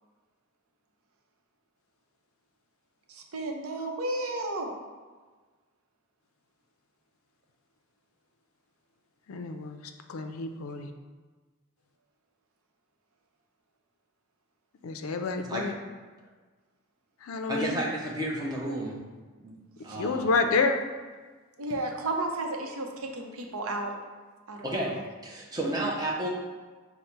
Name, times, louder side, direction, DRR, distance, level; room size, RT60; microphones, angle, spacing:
voice 1, 3.1-4.7 21.6-23.9 24.5-25.0, right 2 dB, 85° right, 2 dB, 0.6 m, -33 dB
voice 2, 9.3-9.8 10.1-10.9 14.8-15.7 17.2-17.7 20.0-20.8, left 4 dB, 80° left, 7 dB, 0.4 m, -28 dB
voice 3, 17.5-19.0 19.4-19.6 19.8-20.3 24.6-25.0 25.2-26.3, right 1 dB, 20° right, -3 dB, 0.7 m, -31 dB
5.3 x 2.1 x 4.4 m, 1.4 s
head